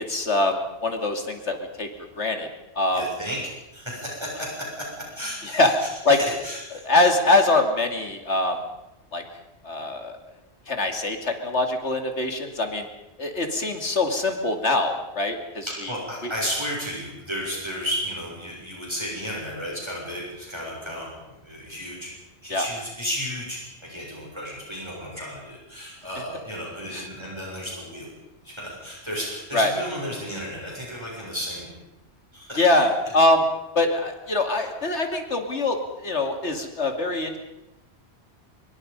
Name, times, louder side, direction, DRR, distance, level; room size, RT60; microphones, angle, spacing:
voice 1, 0.0-1.9 2.2-2.5 2.8-3.0 5.4-5.7 6.0-6.2 6.8-8.6 9.1-9.2 9.6-10.1 10.7-12.9 13.2-15.9 16.2-16.3 22.5-22.7 26.9-27.1 29.5-29.7 32.6-33.4 33.7-37.4, left 2 dB, 85° left, 5 dB, 2.9 m, -23 dB
voice 2, 2.9-3.4 3.7-6.9 15.7-22.1 22.4-28.1 28.4-31.7 32.3-32.8, equal, 25° right, -3 dB, 7.2 m, -33 dB
24.5 x 23.5 x 5.5 m, 0.97 s
omnidirectional pair, 1.1 m